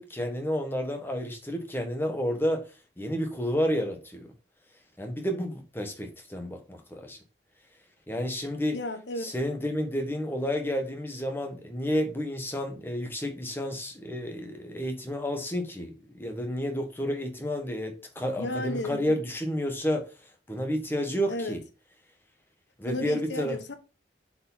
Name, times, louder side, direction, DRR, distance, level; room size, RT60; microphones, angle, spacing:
voice 1, 0.0-2.6 3.0-4.3 5.0-7.2 8.1-8.8 9.2-20.1 20.5-21.6 22.8-23.6, equal, 10° left, 1.5 m, -30 dB
voice 2, 8.7-9.3 18.4-19.2 21.3-21.5 22.9-23.7, left 1 dB, 80° left, 1.2 m, -34 dB
7.7 x 5.0 x 4.1 m
head